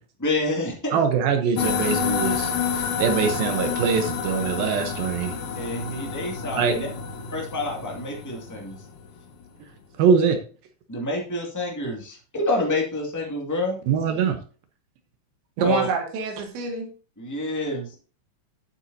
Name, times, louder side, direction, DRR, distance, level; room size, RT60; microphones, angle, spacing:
voice 1, 0.2-1.0 5.5-6.9 7.3-8.8 10.9-13.8 15.6-15.9 17.2-17.9, left 2 dB, 20° left, -1 dB, 0.4 m, -28 dB
voice 2, 0.9-5.3 6.6-6.7 10.0-10.4 13.9-14.4, right 6 dB, 70° right, 7 dB, 2.4 m, -23 dB
sound 1, 1.6-9.2, left 7 dB, 75° left, 1.8 m, -29 dB
voice 3, 15.6-16.9, right 5 dB, 90° right, 2 dB, 4.3 m, -26 dB
11.0 x 8.4 x 2.8 m, 0.37 s
omnidirectional pair, 5.0 m